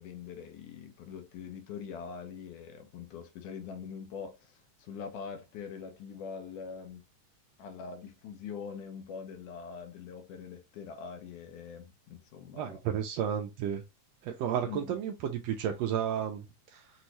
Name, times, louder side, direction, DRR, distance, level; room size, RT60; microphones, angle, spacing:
voice 1, 0.0-7.0 7.6-12.8 14.7-15.0, left 6 dB, 85° left, 2.4 m, -43 dB
voice 2, 12.5-13.8 14.2-16.9, right 9 dB, 85° right, 1.5 m, -32 dB
6.1 x 2.7 x 3.0 m
omnidirectional pair, 3.5 m